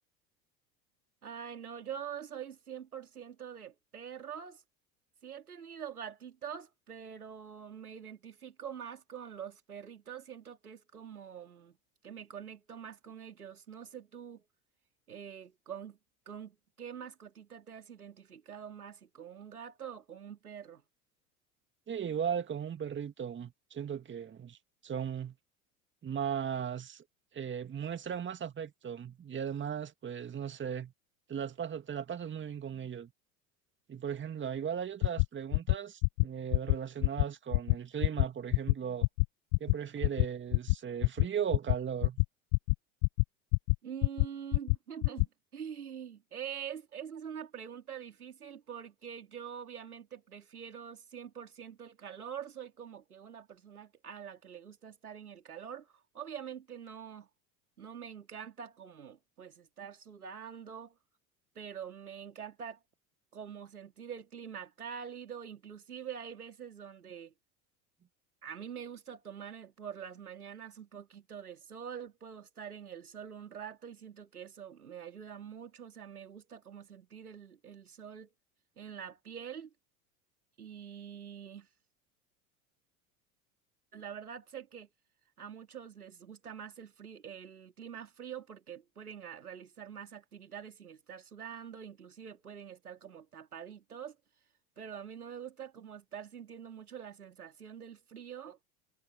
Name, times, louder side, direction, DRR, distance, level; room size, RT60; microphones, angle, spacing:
voice 1, 1.2-4.6 5.2-11.8 12.0-14.4 15.1-16.0 16.3-20.8 43.8-57.3 57.8-61.0 61.5-62.8 63.3-67.3 68.4-78.3 78.8-79.7 80.6-81.7 83.9-84.9 85.4-94.2 94.8-98.6, right 8 dB, 85° right, 3.2 m, -45 dB
voice 2, 21.9-24.6 24.8-25.4 26.0-27.0 27.3-30.9 31.3-33.1 33.9-39.1 39.6-42.2, right 8 dB, 25° right, 2.2 m, -37 dB
sound 1, 35.0-35.3 35.5-35.7 36.0-36.2 36.5-36.7 37.0-37.2 37.5-37.7 38.0-38.2 38.5-38.7 39.0-39.2 39.5-39.7 40.0-40.2 40.5-40.7 41.0-41.2 41.5-41.7 42.0-42.2 42.5-42.7 43.0-43.2 43.5-43.7 44.0-44.3 44.5-44.8 45.0-45.3, left 32 dB, 50° left, 0.5 m, -25 dB
hypercardioid pair, 80°, 43 cm